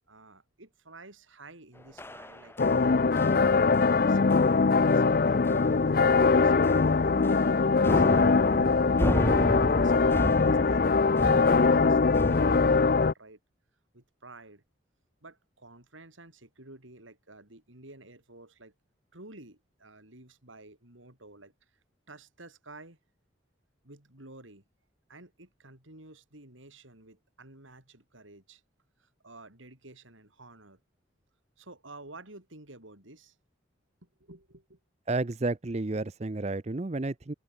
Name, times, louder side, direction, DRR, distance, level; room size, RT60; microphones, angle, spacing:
voice 1, 0.1-2.6 2.8-7.3 7.7-9.1 9.5-13.4 13.9-14.6 15.2-18.7 19.1-21.5 22.1-23.0 23.8-24.6 25.1-28.6 29.0-30.8 31.6-33.4 34.0-34.8, right 2 dB, 85° right, 5.9 m, -51 dB
sound 1, 2.0-2.9 3.2-3.5 3.7-4.0 4.3-4.5 4.9-5.0 5.5-5.8 6.1-6.2 6.6-7.5 7.8-12.8, equal, 10° left, 2.5 m, -33 dB
sound 2, 2.6-13.1, left 4 dB, 45° left, 0.5 m, -22 dB
voice 2, 35.1-37.3, right 2 dB, 35° right, 0.6 m, -31 dB
head